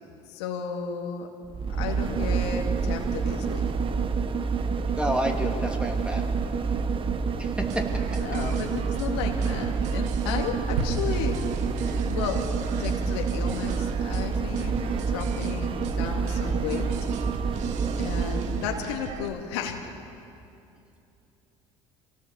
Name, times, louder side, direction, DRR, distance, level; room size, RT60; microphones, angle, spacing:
voice 1, 0.3-1.3 1.8-3.7 8.2-11.4 11.8-12.5 12.8-16.9 18.0-19.8, left 7 dB, 85° left, 2 dB, 2.3 m, -33 dB
sound 1, 1.4-18.8 19.2-19.3, right 5 dB, 40° right, 1.4 m, -28 dB
voice 2, 5.0-6.2 7.4-7.9, equal, 10° right, 2 dB, 3.2 m, -29 dB
sound 2, 7.6-19.3, right 8 dB, 65° right, 1.3 m, -39 dB
sound 3, 10.8-15.1, right 2 dB, 90° right, 2.1 m, -36 dB
25.5 x 18.0 x 7.1 m, 2.7 s
hypercardioid pair, 70°, 14 cm